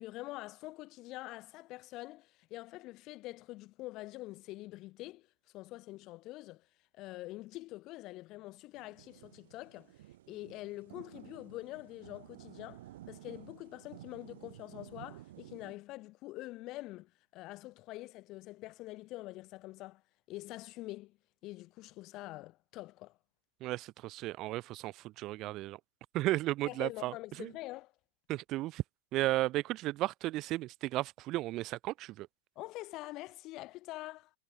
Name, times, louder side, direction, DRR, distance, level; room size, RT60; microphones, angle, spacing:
voice 1, 0.0-5.3 5.5-6.6 6.9-9.9 10.3-20.0 20.3-21.2 21.4-23.2 26.7-27.9 32.6-34.3, left 19 dB, 40° left, 5.6 m, -45 dB
sound 1, 8.7-15.8, right 14 dB, 55° right, 5.7 m, -53 dB
voice 2, 23.6-25.8 26.1-27.5 28.3-28.8 29.1-32.3, right 17 dB, 35° right, 2.0 m, -34 dB
figure-of-eight pair, 90°, 0 cm